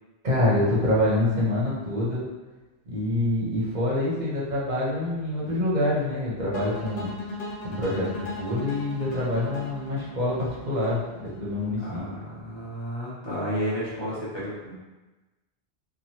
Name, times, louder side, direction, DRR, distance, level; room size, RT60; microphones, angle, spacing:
voice 1, 0.2-2.2 2.9-7.1 7.6-12.0, left 1 dB, 45° right, -6 dB, 0.8 m, -26 dB
sound 1, 6.5-11.6, left 1 dB, 65° left, 0.8 m, -38 dB
voice 2, 11.8-14.7, equal, 25° left, -9 dB, 0.8 m, -32 dB
3.0 x 2.2 x 2.7 m, 1.1 s
omnidirectional pair, 1.2 m